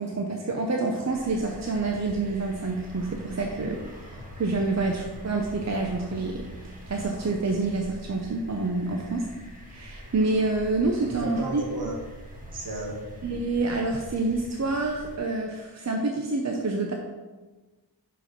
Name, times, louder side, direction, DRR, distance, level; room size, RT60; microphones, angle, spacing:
voice 1, 0.0-6.4 6.9-9.2 9.7-11.6 13.2-16.9, right 3 dB, 40° right, 1 dB, 0.7 m, -27 dB
sound 1, 1.1-15.2, equal, 20° right, 1.4 m, -44 dB
voice 2, 11.0-12.0 12.5-13.0, right 1 dB, 65° right, -2 dB, 1.8 m, -34 dB
6.1 x 5.1 x 5.2 m, 1.2 s
wide cardioid pair, 105°, 40 cm